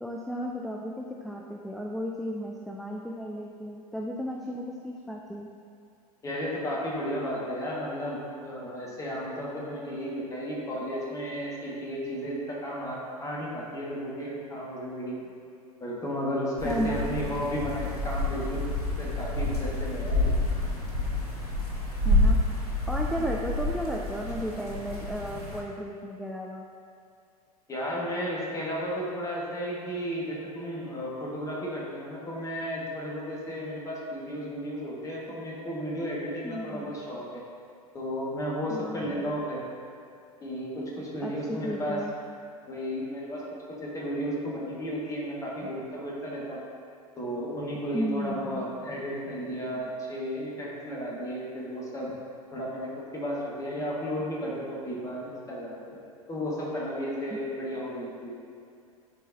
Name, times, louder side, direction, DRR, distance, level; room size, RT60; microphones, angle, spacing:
voice 1, 0.0-5.5 16.6-17.2 22.0-22.4 22.9-26.7 36.4-37.0 38.7-39.3 41.2-42.1 47.9-48.7, equal, ahead, -1 dB, 0.4 m, -34 dB
voice 2, 6.2-15.2 15.8-18.6 19.0-20.3 27.7-37.4 37.9-39.6 40.4-42.0 42.7-43.4 43.7-46.6 47.2-52.1 52.5-56.0 56.3-58.3, equal, 15° left, -5 dB, 1.7 m, -33 dB
sound 1, 16.6-25.6, left 2 dB, 90° left, 1.2 m, -28 dB
11.5 x 4.6 x 2.7 m, 2.4 s
figure-of-eight pair, 85°, 19 cm